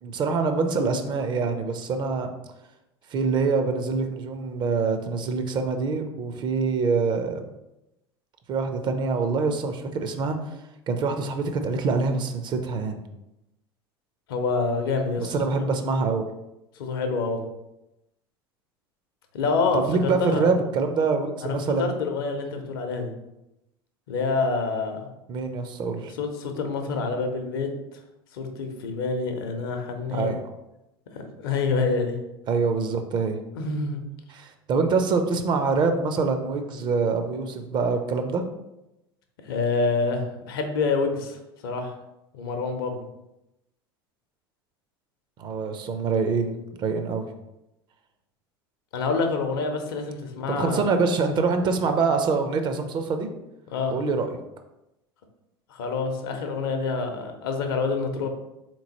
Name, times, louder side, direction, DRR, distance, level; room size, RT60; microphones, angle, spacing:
voice 1, 0.0-2.3 3.1-7.4 8.5-10.4 10.9-13.0 15.2-16.2 19.7-21.9 25.3-26.1 30.1-30.4 32.5-33.4 34.3-38.4 45.4-47.3 50.5-53.3 53.9-54.3, right 4 dB, 35° right, 7 dB, 0.5 m, -25 dB
voice 2, 14.3-15.4 16.8-17.4 19.3-20.5 21.4-23.1 24.1-25.0 26.1-28.0 28.3-30.3 31.1-32.2 33.5-34.0 39.4-42.0 42.3-43.0 48.9-50.8 53.7-54.0 55.7-58.3, left 4 dB, 70° left, 5 dB, 0.6 m, -27 dB
3.8 x 3.0 x 2.8 m, 0.91 s
hypercardioid pair, 75°, 13 cm